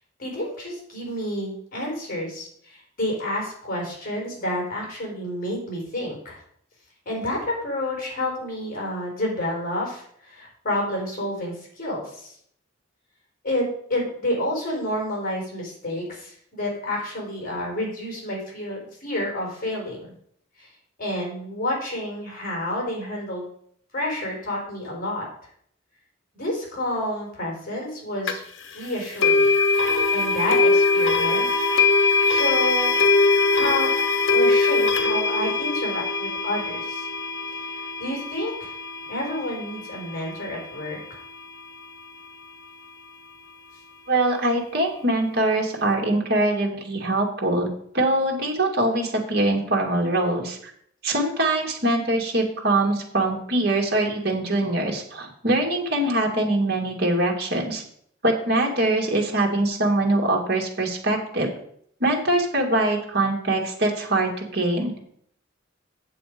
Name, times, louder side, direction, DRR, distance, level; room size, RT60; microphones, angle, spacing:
voice 1, 0.2-6.4 7.1-12.3 13.4-13.6 13.9-20.1 20.6-20.7 21.0-23.5 23.9-25.3 26.3-28.4 28.7-29.5 30.1-31.7 31.9-33.0 33.5-33.9 34.3-37.1 37.7-38.7 39.1-41.2, left 1 dB, 50° left, -1 dB, 4.2 m, -29 dB
sound 1, 28.3-28.4 29.2-40.2, left 3 dB, 75° left, 1.1 m, -21 dB
voice 2, 44.1-50.6 51.0-57.8 58.2-61.5 62.0-64.9, right 2 dB, 55° right, 0 dB, 2.1 m, -23 dB
8.8 x 6.9 x 5.1 m, 0.65 s
head